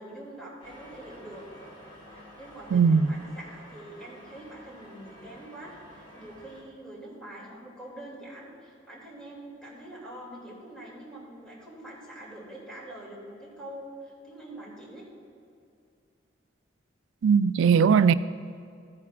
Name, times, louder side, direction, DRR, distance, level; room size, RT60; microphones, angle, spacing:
voice 1, 0.0-1.4 2.4-15.1, right 1 dB, 5° left, 2.5 m, -44 dB
sound 1, 0.6-6.6, equal, 35° left, 2.4 m, -50 dB
voice 2, 2.7-3.1 17.2-18.1, right 6 dB, 80° right, 0.3 m, -19 dB
14.5 x 9.2 x 2.4 m
head